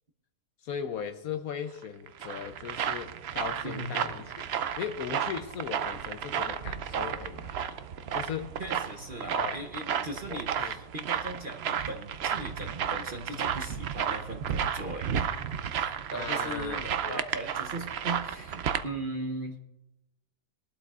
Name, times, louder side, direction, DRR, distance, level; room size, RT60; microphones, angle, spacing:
voice 1, 0.6-4.3 4.8-7.5 8.1-8.6 9.3-9.6 10.3-10.8 16.1-17.2, left 8 dB, 70° left, 1.0 m, -38 dB
sound 1, 1.8-18.8, right 8 dB, 85° right, 0.5 m, -33 dB
voice 2, 8.6-15.2 15.7-19.6, right 1 dB, 40° right, 0.8 m, -38 dB
21.0 x 12.0 x 2.4 m
omnidirectional pair, 1.8 m